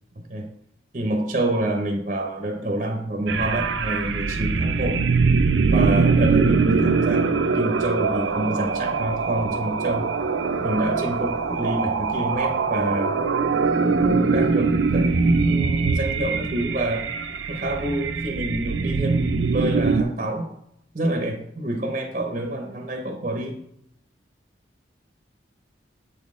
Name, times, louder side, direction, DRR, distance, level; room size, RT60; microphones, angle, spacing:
voice 1, 0.2-0.5 0.9-5.1 5.7-10.1 10.6-13.2 13.8-17.1 17.5-20.5 20.9-23.6, right 1 dB, 40° right, 3 dB, 0.7 m, -27 dB
sound 1, 3.3-20.0, right 4 dB, 85° right, 0.5 m, -22 dB
7.7 x 4.0 x 3.6 m, 0.74 s
head